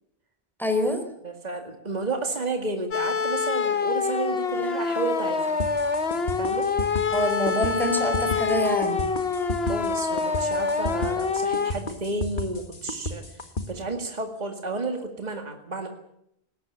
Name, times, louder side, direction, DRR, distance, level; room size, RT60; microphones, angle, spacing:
voice 1, 0.6-1.0 7.1-9.1, equal, ahead, 6 dB, 4.0 m, -25 dB
voice 2, 1.2-5.5 6.4-6.7 9.7-15.9, right 3 dB, 45° right, 4 dB, 2.3 m, -32 dB
sound 1, 2.9-11.7, left 5 dB, 80° left, 1.8 m, -26 dB
sound 2, 5.6-13.7, left 2 dB, 55° left, 2.0 m, -32 dB
19.0 x 18.5 x 8.7 m, 0.76 s
omnidirectional pair, 1.0 m